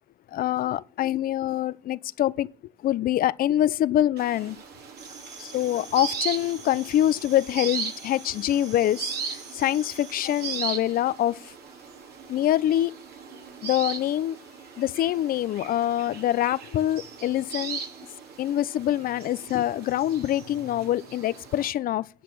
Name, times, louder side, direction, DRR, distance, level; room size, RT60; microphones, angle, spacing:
voice 1, 0.3-2.5 2.8-4.6 5.4-11.5 12.3-12.9 13.6-14.4 14.8-17.8 18.4-22.1, left 12 dB, 60° left, 0.6 m, -25 dB
sound 1, 4.2-21.7, right 6 dB, 70° right, 2.8 m, -38 dB
sound 2, 5.0-10.6, right 4 dB, 40° right, 2.9 m, -46 dB
10.0 x 6.6 x 7.6 m
cardioid pair, 110°, 17 cm